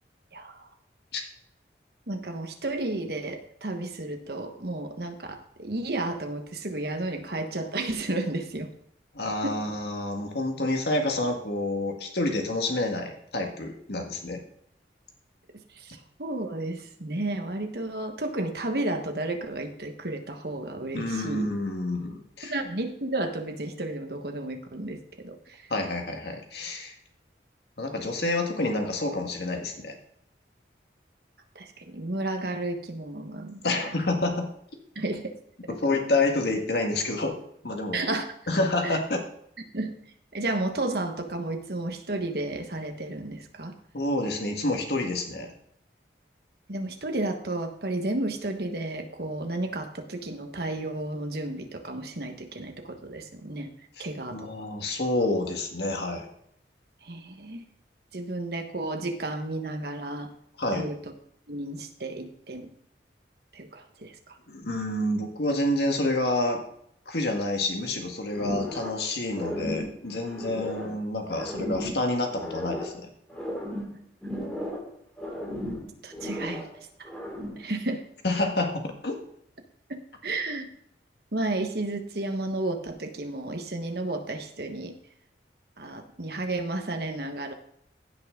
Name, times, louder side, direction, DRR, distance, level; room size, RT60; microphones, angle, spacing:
voice 1, 2.1-8.7 9.4-9.5 15.7-21.5 22.5-25.6 31.5-33.8 34.9-35.3 35.6-35.7 37.9-38.2 38.8-39.0 39.7-39.9 40.3-43.8 46.7-53.7 54.0-54.5 57.0-57.6 58.1-60.3 60.7-61.0 61.5-62.7 63.5-64.4 76.0-76.7 77.0-77.1 77.6-78.0 79.9-80.7 81.3-84.9 85.8-87.5, right 2 dB, 60° right, 5 dB, 1.4 m, -32 dB
voice 2, 9.1-14.4 20.9-22.5 25.7-26.9 27.8-29.9 33.6-34.5 35.7-37.4 37.6-38.0 38.5-39.2 43.9-45.5 54.0-54.1 54.3-56.3 60.6-60.9 64.5-66.6 67.1-73.1 78.2-79.2, left 2 dB, 65° left, 2 dB, 1.8 m, -28 dB
sound 1, 68.3-69.0 69.3-71.0 71.3-73.0 73.3-74.9 75.2-76.7 77.0-77.7, left 1 dB, 5° left, 2.9 m, -35 dB
16.0 x 6.0 x 3.8 m, 0.71 s
head